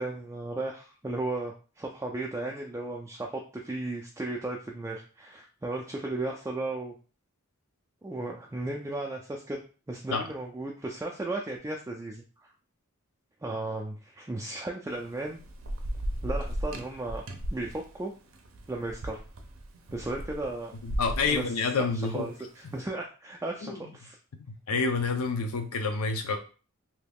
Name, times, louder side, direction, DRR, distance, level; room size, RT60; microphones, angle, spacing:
voice 1, 0.0-6.9 8.0-9.6 9.9-12.2 13.4-15.4 16.2-17.2 17.5-18.1 18.7-19.2 19.9-20.7 21.3-21.5 21.8-21.9 22.1-24.2, right 2 dB, 15° right, 0 dB, 0.3 m, -35 dB
Thunder / Rain, 14.9-22.5, equal, 65° right, 0.5 m, -36 dB
voice 2, 20.8-22.3 23.6-23.8 24.7-26.4, left 4 dB, 90° left, 5 dB, 0.6 m, -28 dB
2.8 x 2.3 x 3.4 m, 0.36 s
head